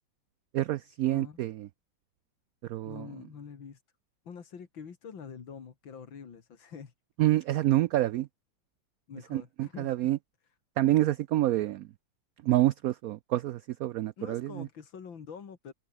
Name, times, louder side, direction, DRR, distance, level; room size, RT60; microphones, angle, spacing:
voice 1, 0.5-1.7 2.7-3.1 7.2-8.3 9.3-10.2 10.8-11.9 12.4-14.7, right 14 dB, 85° right, 0.7 m, -27 dB
voice 2, 1.1-1.4 2.8-3.8 4.2-6.9 7.3-7.4 9.1-10.0 14.2-15.7, left 6 dB, 85° left, 3.0 m, -45 dB
omnidirectional pair, 2.1 m